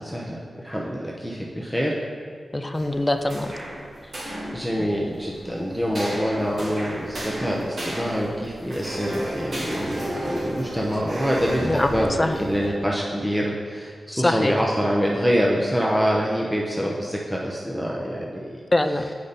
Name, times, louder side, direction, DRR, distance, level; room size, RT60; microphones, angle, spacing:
voice 1, 0.0-2.0 4.5-18.6, equal, 5° right, -3 dB, 0.9 m, -25 dB
voice 2, 2.5-3.5 4.8-4.9 11.6-11.9 12.2-12.4 14.1-14.5 18.7-19.1, left 1 dB, 25° left, 7 dB, 0.5 m, -23 dB
sound 1, 2.7-12.7, right 1 dB, 70° right, 1.9 m, -32 dB
8.3 x 5.1 x 4.2 m, 2.1 s
cardioid pair, 55°, 0 cm